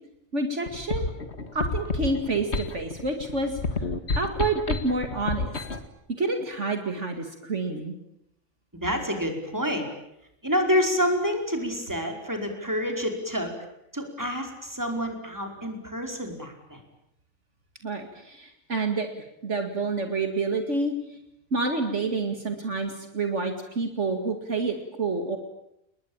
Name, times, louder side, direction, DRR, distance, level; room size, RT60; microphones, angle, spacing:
voice 1, 0.3-1.1 1.5-3.6 4.1-5.6 6.2-7.9 17.8-19.1 19.4-21.2 21.5-25.4, right 3 dB, 60° right, 5 dB, 2.6 m, -28 dB
sound 1, 0.7-5.9, left 3 dB, 50° left, 2.1 m, -30 dB
voice 2, 8.7-9.9 10.4-13.5 13.9-16.8, equal, 15° right, 3 dB, 5.0 m, -28 dB
30.0 x 21.0 x 8.9 m, 0.82 s
omnidirectional pair, 1.4 m